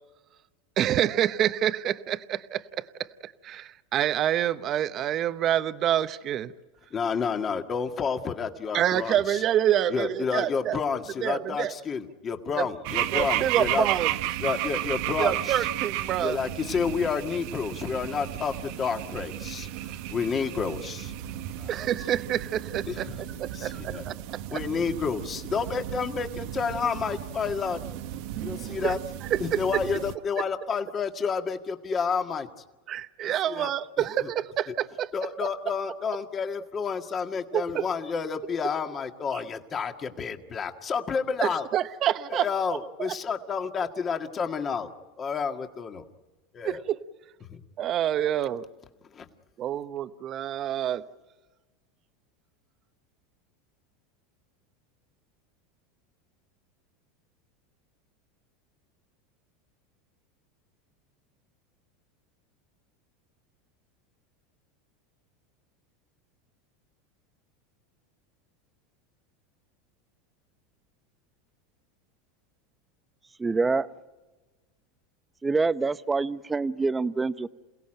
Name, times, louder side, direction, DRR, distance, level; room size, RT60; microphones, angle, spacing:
voice 1, 0.8-2.9 3.2-6.5 8.7-10.8 11.2-11.7 12.6-12.7 13.1-14.1 15.2-16.4 21.7-23.1 23.4-24.1 24.5-24.6 28.8-28.9 29.3-29.6 32.9-35.1 37.5-37.9 41.4-42.5 43.0-43.1 46.6-47.0 47.8-48.6 49.6-51.0, right 11 dB, 40° right, 1.0 m, -27 dB
voice 2, 6.9-9.4 9.9-13.9 14.4-15.7 16.2-21.1 21.6-21.8 22.9-23.2 23.5-24.0 24.5-27.8 28.4-29.0 29.4-32.5 33.2-33.7 34.2-34.3 35.1-41.7 42.3-44.9 45.2-46.0 46.5-46.8 47.5-47.6 49.1-49.3, left 6 dB, 30° left, 1.9 m, -30 dB
sound 1, 12.8-30.2, right 13 dB, 65° right, 1.2 m, -34 dB
voice 3, 73.4-73.9 75.4-77.5, right 3 dB, 15° right, 0.8 m, -26 dB
28.0 x 17.0 x 9.0 m
supercardioid pair, 115°, 0 cm